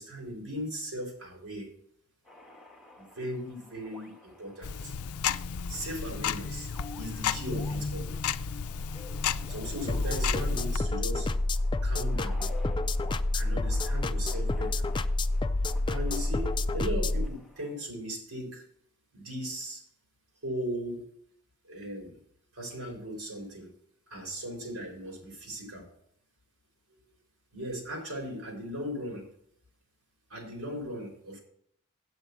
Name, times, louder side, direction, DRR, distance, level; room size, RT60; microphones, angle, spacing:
voice 1, 0.0-1.7 3.0-4.9 5.7-8.1 9.5-11.3 11.8-12.5 13.3-14.9 15.9-18.6 19.1-19.8 20.4-21.1 21.6-22.1 22.5-23.7 24.1-25.9 27.5-29.3 30.3-31.4, equal, 85° right, 2 dB, 4.2 m, -38 dB
sound 1, 2.2-17.7, left 2 dB, ahead, 1.6 m, -52 dB
Tick-tock, 4.6-10.8, left 7 dB, 80° left, 0.5 m, -33 dB
sound 2, 9.9-17.3, left 2 dB, 20° left, 0.4 m, -28 dB
8.2 x 7.9 x 6.1 m, 0.69 s
head